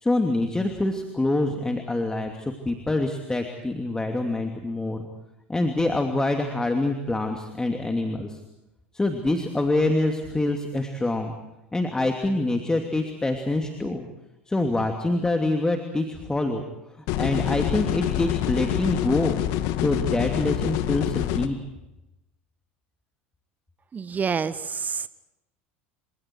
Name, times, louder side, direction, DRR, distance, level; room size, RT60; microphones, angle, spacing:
voice 1, 0.0-5.0 5.5-8.4 8.9-11.4 11.7-14.1 14.5-16.6 17.0-19.4 19.8-21.6, left 2 dB, 10° left, 4 dB, 2.8 m, -25 dB
sound 1, 17.1-21.5, left 12 dB, 60° left, 1.8 m, -26 dB
voice 2, 23.9-25.1, right 6 dB, 25° right, 14 dB, 1.6 m, -28 dB
29.5 x 27.0 x 4.7 m, 0.95 s
hypercardioid pair, 75°, 6 cm